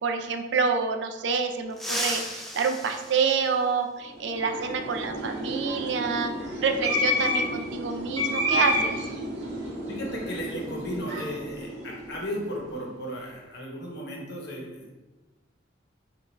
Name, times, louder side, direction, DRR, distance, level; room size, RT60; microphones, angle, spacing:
voice 1, 0.0-6.3 6.6-8.9, right 5 dB, 65° right, 6 dB, 0.4 m, -27 dB
sound 1, 1.7-4.1 5.8-5.9 7.1-7.2 8.8-9.0 9.3-9.6 10.0-12.2 12.5-12.7 13.2-13.6, equal, ahead, 0.5 m, -37 dB
sound 2, 4.1-12.6, left 1 dB, 35° right, 1.2 m, -30 dB
voice 2, 9.9-14.9, equal, 60° left, -2 dB, 1.0 m, -35 dB
5.0 x 2.5 x 3.2 m, 1.1 s
head